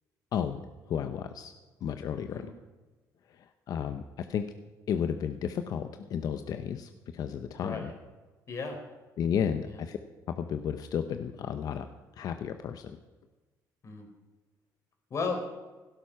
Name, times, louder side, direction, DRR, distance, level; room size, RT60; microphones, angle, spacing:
voice 1, 0.3-0.6 0.9-1.5 1.8-2.4 3.7-4.4 4.9-7.9 9.2-10.0 10.4-11.9 12.2-13.0, left 8 dB, 55° left, 8 dB, 0.8 m, -32 dB
voice 2, 7.6-7.9 8.5-8.8 9.7-9.8 13.8-14.1 15.1-15.4, left 4 dB, 40° left, 4 dB, 3.8 m, -34 dB
16.5 x 12.5 x 5.7 m, 1.3 s
cardioid pair, 125°, 7 cm